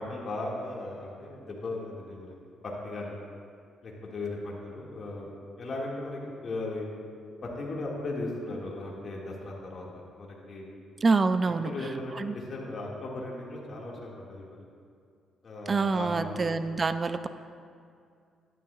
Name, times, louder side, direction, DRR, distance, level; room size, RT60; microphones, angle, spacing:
voice 1, 0.0-2.3 2.6-3.2 3.8-5.3 5.6-6.9 7.4-10.7 11.6-14.7 15.4-16.6, left 2 dB, 45° left, -3 dB, 1.9 m, -37 dB
voice 2, 11.0-11.7 12.2-12.3 15.7-17.3, right 4 dB, 35° right, 11 dB, 0.3 m, -26 dB
12.5 x 10.5 x 2.4 m, 2.3 s
cardioid pair, 90°, 0 cm